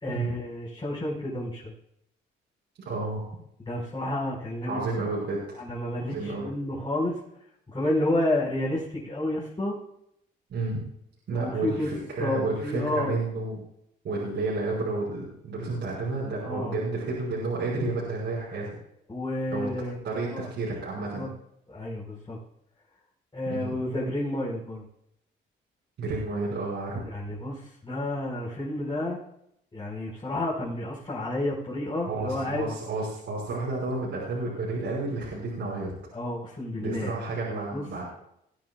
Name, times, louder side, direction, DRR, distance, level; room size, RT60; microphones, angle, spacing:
voice 1, 0.0-1.7 3.7-5.0 5.6-7.2 7.7-9.8 11.3-11.9 12.2-13.2 16.4-16.8 19.1-20.0 20.3-20.5 21.1-21.3 21.7-22.4 23.3-24.8 27.0-29.2 29.7-32.7 36.1-37.1 37.5-37.8, left 1 dB, 25° left, -6 dB, 5.2 m, -30 dB
voice 2, 2.9-3.2 4.7-5.6 6.1-6.5 10.5-10.8 11.3-13.6 14.0-18.7 19.5-19.7 20.0-21.3 23.5-23.7 26.0-27.0 32.0-35.9 36.8-38.0, right 3 dB, 65° right, -5 dB, 5.5 m, -31 dB
20.5 x 11.5 x 2.4 m, 0.75 s
cardioid pair, 90°, 20 cm